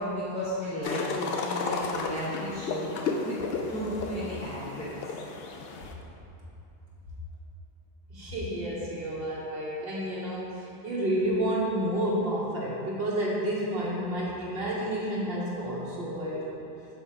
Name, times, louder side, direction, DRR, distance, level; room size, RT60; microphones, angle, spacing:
voice 1, 0.0-3.4 3.7-4.8, equal, 5° left, -11 dB, 0.7 m, -34 dB
sound 1, 0.8-5.9, left 4 dB, 70° left, 0.7 m, -33 dB
voice 2, 8.1-16.6, right 1 dB, 65° right, -6 dB, 1.4 m, -30 dB
6.3 x 3.7 x 4.5 m, 2.8 s
omnidirectional pair, 1.1 m